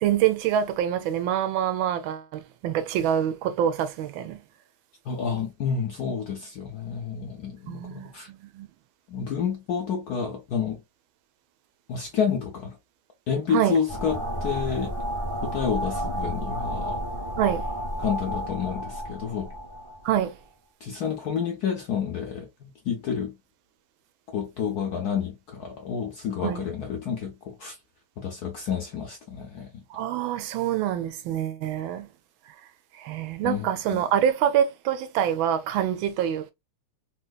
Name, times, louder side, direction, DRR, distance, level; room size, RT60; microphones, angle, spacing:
voice 1, 0.0-4.4 7.7-8.7 13.5-13.8 17.4-17.7 20.0-20.4 26.4-26.6 29.9-32.1 33.0-36.5, right 10 dB, 75° right, 1.3 m, -26 dB
voice 2, 5.1-8.3 9.1-10.8 11.9-12.8 13.3-14.9 15.4-17.0 18.0-19.5 20.8-23.4 24.3-27.8 28.2-29.8 33.4-34.0, left 7 dB, 70° left, 0.9 m, -29 dB
sound 1, 13.9-20.3, equal, 40° right, 0.3 m, -31 dB
3.4 x 2.8 x 2.3 m
omnidirectional pair, 2.3 m